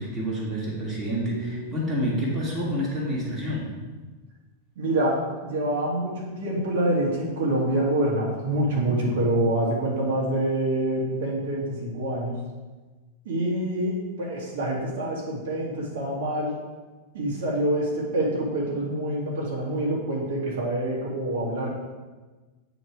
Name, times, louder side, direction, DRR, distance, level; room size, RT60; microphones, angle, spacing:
voice 1, 0.0-3.7, equal, 25° right, -5 dB, 1.8 m, -28 dB
voice 2, 1.3-1.6 2.0-2.2 4.8-5.2 5.4-12.4 13.3-16.5 17.1-21.7, right 1 dB, 70° right, -4 dB, 1.8 m, -26 dB
8.9 x 3.2 x 4.6 m, 1.3 s
supercardioid pair, 135°, 0 cm